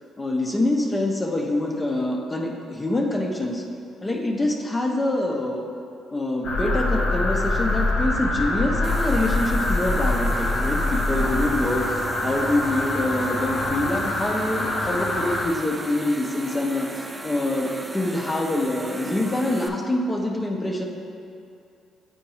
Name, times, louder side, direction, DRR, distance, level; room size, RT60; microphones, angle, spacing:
voice 1, 0.2-3.6 4.0-5.7 6.1-20.8, left 1 dB, 20° left, 0 dB, 0.8 m, -25 dB
sound 1, 6.4-15.5, left 2 dB, 75° left, 1.0 m, -24 dB
sound 2, 8.8-19.7, right 2 dB, 20° right, 0.5 m, -37 dB
8.5 x 4.4 x 3.1 m, 2.4 s
cardioid pair, 75°, 0 cm